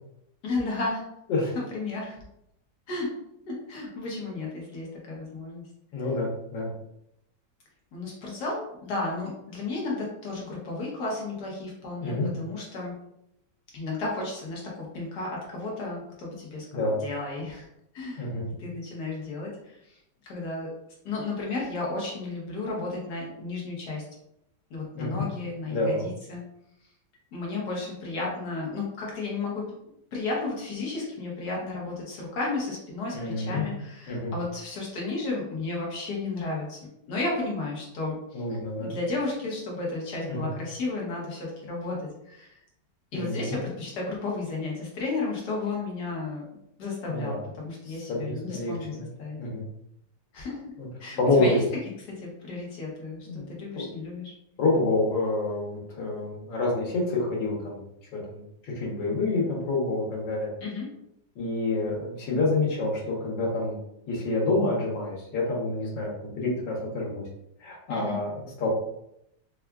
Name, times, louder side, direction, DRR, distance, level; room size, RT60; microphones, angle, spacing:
voice 1, 0.4-1.0 1.7-2.2 2.9-3.2 3.4-5.6 7.9-12.9 13.7-17.7 17.9-18.3 18.6-20.8 21.0-24.0 24.7-26.4 27.3-29.6 30.1-38.4 38.8-42.6 43.1-46.4 46.8-49.4 50.3-50.7 51.0-51.6 52.0-54.3 60.6-60.9 67.9-68.2, left 3 dB, 65° left, -3 dB, 1.5 m, -33 dB
voice 2, 5.9-6.7 12.0-12.3 16.7-17.0 18.2-18.5 25.0-25.3 25.7-26.1 33.1-33.7 34.1-34.3 38.3-39.0 40.3-40.5 43.1-43.6 47.1-47.4 48.1-49.1 49.4-49.6 50.8-50.9 51.2-51.6 53.3-53.5 53.7-53.8 54.6-57.8 58.1-60.5 61.3-63.8 64.1-67.2 67.6-68.7, left 2 dB, 80° left, -3 dB, 1.7 m, -28 dB
4.7 x 2.4 x 2.3 m, 0.79 s
omnidirectional pair, 1.9 m